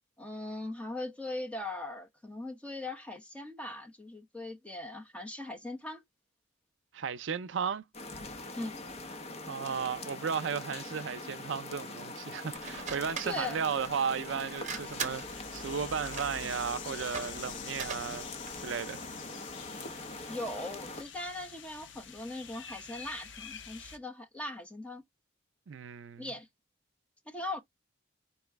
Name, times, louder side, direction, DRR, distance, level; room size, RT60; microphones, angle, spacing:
voice 1, 0.2-6.0 8.6-8.8 13.2-13.6 20.3-25.0 26.2-26.5 27.3-27.6, left 2 dB, 5° left, 1.0 m, -40 dB
voice 2, 6.9-7.8 9.5-18.3 18.6-19.0 25.7-26.3, right 6 dB, 70° right, 0.5 m, -35 dB
sound 1, 7.9-21.0, left 2 dB, 35° left, 0.8 m, -43 dB
sound 2, 12.5-18.9, right 6 dB, 40° right, 0.9 m, -43 dB
sound 3, 14.7-24.0, left 7 dB, 65° left, 0.7 m, -47 dB
4.7 x 3.0 x 3.4 m
head